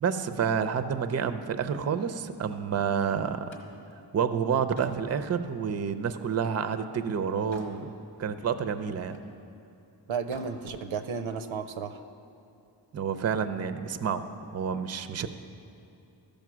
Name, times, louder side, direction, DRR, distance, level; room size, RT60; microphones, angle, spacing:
voice 1, 0.0-3.6 4.1-7.9 8.2-9.2 12.9-14.2 14.5-15.3, right 7 dB, 35° right, 10 dB, 0.5 m, -29 dB
Slam, 3.2-6.7 7.1-7.8 8.2-9.4 10.1-10.6, left 1 dB, 90° left, 1.4 m, -52 dB
voice 2, 10.1-12.0, right 6 dB, 90° right, 9 dB, 0.6 m, -33 dB
13.0 x 5.2 x 6.1 m, 2.7 s
cardioid pair, 70°, 46 cm